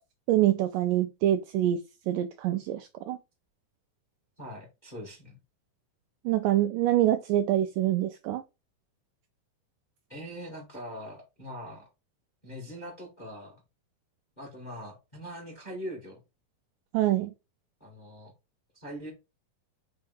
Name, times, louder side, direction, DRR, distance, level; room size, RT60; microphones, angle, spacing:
voice 1, 0.3-3.2 6.3-8.4 16.9-17.3, right 13 dB, 80° right, 2.0 m, -25 dB
voice 2, 4.4-5.4 10.1-11.9 12.4-13.6 14.4-16.2 17.8-18.3 18.7-19.1, equal, 20° left, 1.4 m, -42 dB
5.5 x 3.4 x 5.4 m
omnidirectional pair, 4.3 m